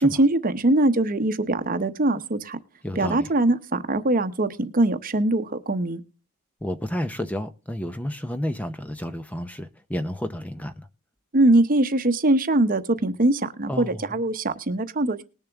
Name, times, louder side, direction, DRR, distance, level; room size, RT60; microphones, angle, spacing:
voice 1, 0.0-2.6 3.0-6.0 11.3-15.2, right 2 dB, 40° right, 0.9 m, -22 dB
voice 2, 2.8-3.3 6.6-10.9 13.7-14.2, equal, 5° left, 0.6 m, -31 dB
20.0 x 6.9 x 3.5 m
head